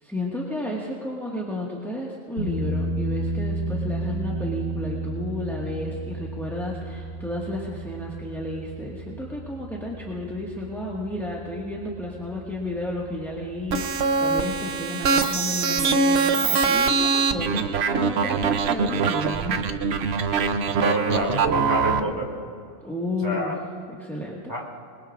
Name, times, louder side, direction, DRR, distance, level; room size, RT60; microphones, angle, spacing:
voice 1, 0.0-19.6 22.8-23.5 23.9-24.5, left 1 dB, ahead, -4 dB, 1.5 m, -32 dB
sound 1, 2.4-14.7, right 1 dB, 85° left, 3.8 m, -33 dB
sound 2, 13.7-22.0, right 5 dB, 55° right, 0.8 m, -23 dB
voice 2, 20.8-22.3 23.2-23.6 24.5-24.7, right 1 dB, 15° right, -3 dB, 3.0 m, -27 dB
26.5 x 21.5 x 2.5 m, 2.3 s
omnidirectional pair, 1.7 m